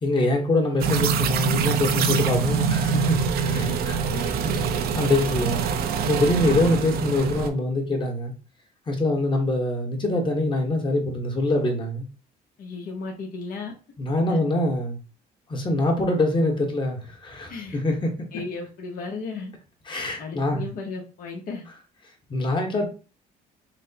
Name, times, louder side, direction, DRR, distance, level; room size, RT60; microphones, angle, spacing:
voice 1, 0.0-4.0 4.4-4.6 4.9-5.6 6.1-8.3 8.9-12.1 14.0-15.0 15.5-18.1 19.9-20.7 22.3-22.9, left 2 dB, 30° left, 1.2 m, -24 dB
sound 1, 0.8-7.5, right 6 dB, 65° right, 0.6 m, -24 dB
voice 2, 3.4-3.8 4.1-4.4 12.6-13.7 14.3-14.4 17.5-17.8 18.3-19.5 20.2-21.6, left 4 dB, 55° left, 1.0 m, -35 dB
6.0 x 2.1 x 2.8 m
cardioid pair, 110°, 17 cm